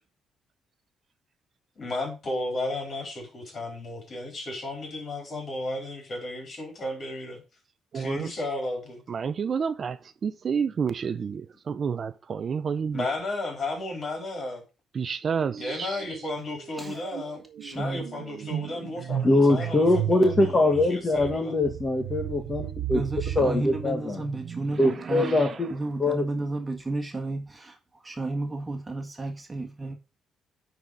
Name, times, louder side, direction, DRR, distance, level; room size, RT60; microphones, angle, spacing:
voice 1, 1.8-7.4 8.0-9.0 12.9-14.6 15.6-21.5, left 2 dB, 45° left, 4.1 m, -34 dB
voice 2, 7.9-8.3 9.1-13.0 14.9-16.0 24.4-25.5, right 6 dB, 50° right, 0.5 m, -30 dB
sound 1, 15.4-15.7 16.0-24.8, right 11 dB, 80° right, 0.8 m, -35 dB
voice 3, 17.6-18.1 22.9-25.4 25.7-27.8 28.0-29.9, right 2 dB, 20° right, 1.6 m, -32 dB
voice 4, 19.2-23.0 23.3-24.2 24.8-25.7 26.0-26.2, left 2 dB, 30° left, 1.6 m, -23 dB
9.5 x 4.2 x 5.2 m
cardioid pair, 90°, 0 cm